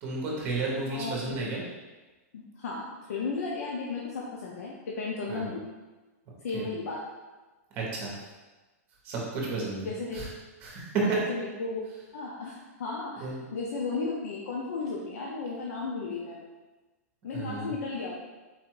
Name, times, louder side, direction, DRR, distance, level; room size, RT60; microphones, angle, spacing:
voice 1, 0.0-1.6 5.3-5.5 6.5-6.6 7.7-8.1 9.0-9.9 10.1-10.3 10.6-11.0 13.2-13.4 17.3-17.7, right 3 dB, 25° right, -3 dB, 1.1 m, -32 dB
voice 2, 0.9-1.6 2.3-5.6 6.4-7.0 9.8-10.3 11.0-11.8 12.1-16.4 17.2-18.1, left 4 dB, 80° left, -3 dB, 0.6 m, -34 dB
4.2 x 2.5 x 4.6 m, 1.2 s
supercardioid pair, 175°, 8 cm